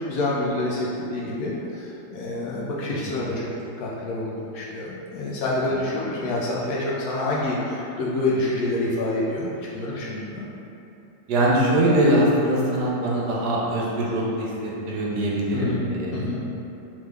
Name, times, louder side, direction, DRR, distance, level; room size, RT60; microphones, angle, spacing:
voice 1, 0.0-3.5 3.8-10.4 15.5-16.4, left 2 dB, 70° left, -5 dB, 0.9 m, -27 dB
voice 2, 11.3-16.2, right 1 dB, 75° right, -4 dB, 1.3 m, -22 dB
3.5 x 3.2 x 3.3 m, 2.9 s
omnidirectional pair, 1.8 m